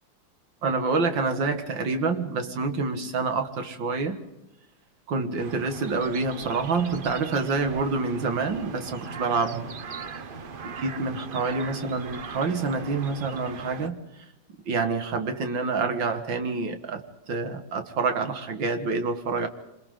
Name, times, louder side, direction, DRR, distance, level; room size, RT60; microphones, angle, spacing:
voice 1, 0.6-4.2 5.1-9.7 10.6-14.0 14.7-19.5, right 4 dB, 75° right, 7 dB, 2.4 m, -27 dB
sound 1, 5.4-13.9, right 5 dB, 45° right, 0.7 m, -39 dB
26.0 x 26.0 x 3.9 m, 0.99 s
omnidirectional pair, 2.1 m